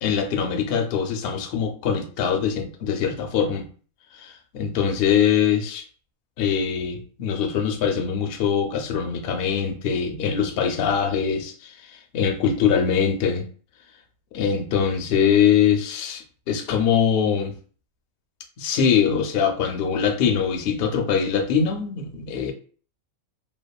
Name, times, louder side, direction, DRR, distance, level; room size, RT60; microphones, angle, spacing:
voice 1, 0.0-3.7 4.1-5.8 6.4-13.4 14.3-17.5 18.6-22.5, left 7 dB, 65° left, 4 dB, 0.6 m, -23 dB
2.8 x 2.2 x 2.2 m, 0.42 s
omnidirectional pair, 1.4 m